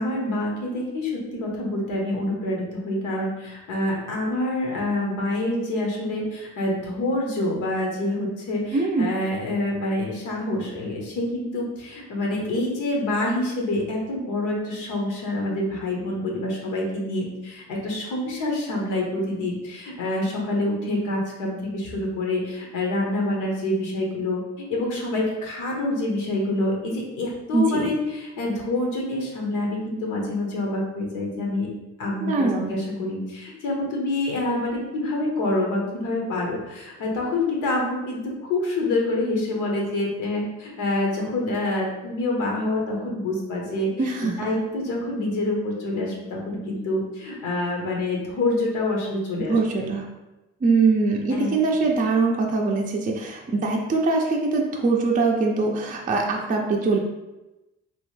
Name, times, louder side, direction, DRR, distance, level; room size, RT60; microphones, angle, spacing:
voice 1, 0.0-24.4 24.7-31.7 32.0-43.9 44.2-49.9 51.3-51.5, left 2 dB, 85° left, -2 dB, 0.9 m, -27 dB
voice 2, 8.7-9.1 27.5-27.9 32.2-32.8 44.0-44.5 49.5-50.1 50.6-57.0, right 3 dB, 30° right, 0 dB, 0.4 m, -22 dB
3.0 x 2.1 x 3.1 m, 1.0 s
cardioid pair, 90°, 30 cm